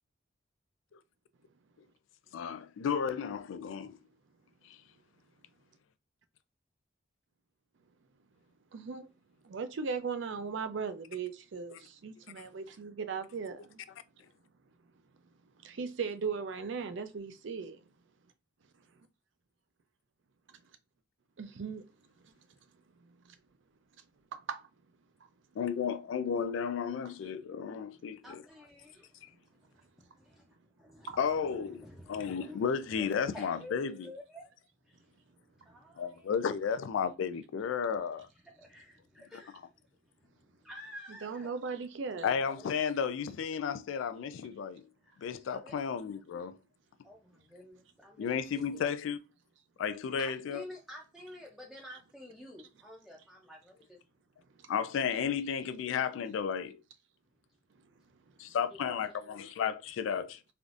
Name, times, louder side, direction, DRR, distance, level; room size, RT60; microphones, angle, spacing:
voice 1, 2.3-4.0 4.7-4.8 12.4-12.5 25.6-28.4 29.2-29.3 31.2-34.1 36.0-38.3 42.2-44.8 45.2-46.6 48.2-49.2 49.8-50.6 54.7-56.8 58.4-60.5, left 7 dB, 80° left, 0.3 m, -33 dB
voice 2, 8.7-9.1 9.4-11.7 12.0-13.8 15.6-17.8 21.4-21.8 22.2-22.3 23.0-23.4 24.3-24.7 31.1-31.2 41.2-42.4 54.6-54.7, right 5 dB, 65° right, 0.4 m, -38 dB
voice 3, 28.2-29.3 29.6-29.7 30.0-30.4 30.8-34.4 34.9-35.1 35.6-36.3 38.4-39.7 40.2-41.6 42.1-42.7 45.2-45.8 47.0-48.3 48.5-48.9 50.2-54.0 58.7-59.0, left 1 dB, ahead, 0.5 m, -50 dB
3.4 x 2.5 x 2.4 m
head